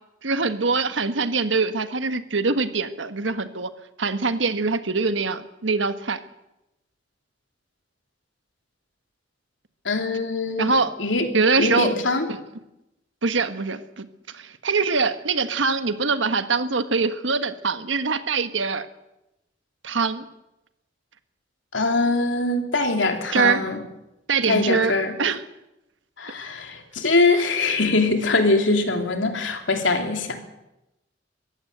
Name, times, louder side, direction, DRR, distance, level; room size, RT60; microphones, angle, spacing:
voice 1, 0.2-3.7 4.0-6.2 10.6-10.9 11.3-11.9 12.3-12.4 13.2-14.1 14.3-18.9 19.8-20.2 23.3-23.6 24.3-24.9 25.2-25.4, right 4 dB, 85° right, 11 dB, 1.4 m, -23 dB
voice 2, 9.8-10.7 11.0-11.3 11.6-12.3 21.7-23.8 24.5-25.1 26.2-30.4, left 3 dB, 90° left, 5 dB, 3.0 m, -22 dB
23.0 x 15.5 x 8.0 m, 0.92 s
head